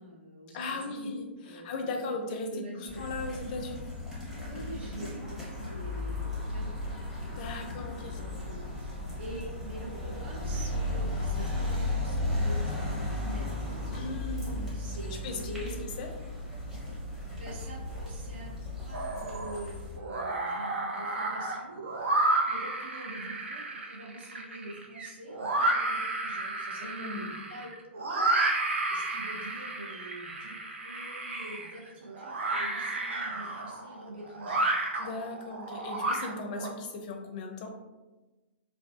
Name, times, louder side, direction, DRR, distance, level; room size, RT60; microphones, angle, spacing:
voice 1, 0.0-1.1 1.4-2.2 2.5-3.1 4.5-7.0 7.2-13.8 14.7-15.9 16.8-17.0 17.3-22.1 22.5-27.7 28.1-28.5 28.9-34.7, right 1 dB, 60° right, -4 dB, 0.8 m, -45 dB
voice 2, 0.5-3.9 7.3-8.2 13.9-14.8 15.1-16.1 26.8-27.3 35.0-37.7, left 3 dB, 45° left, 3 dB, 0.4 m, -38 dB
sound 1, 2.9-20.0, left 1 dB, 5° right, 0.8 m, -35 dB
sound 2, 18.9-19.6 20.0-36.7, right 2 dB, 85° right, 0.4 m, -31 dB
2.3 x 2.3 x 2.4 m, 1.1 s
hypercardioid pair, 120°, 6 cm